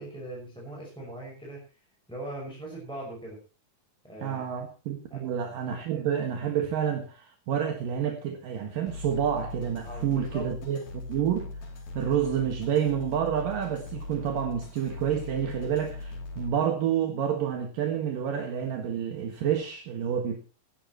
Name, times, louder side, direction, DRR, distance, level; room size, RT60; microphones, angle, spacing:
voice 1, 0.0-1.8 2.1-3.4 4.0-4.4 5.1-5.3 9.8-10.5, right 1 dB, ahead, 5.9 m, -40 dB
voice 2, 4.2-10.8 11.1-11.5 11.9-20.4, right 9 dB, 65° right, 3.2 m, -29 dB
sound 1, 8.9-16.5, left 2 dB, 70° left, 4.9 m, -40 dB
17.5 x 16.0 x 3.1 m
omnidirectional pair, 4.3 m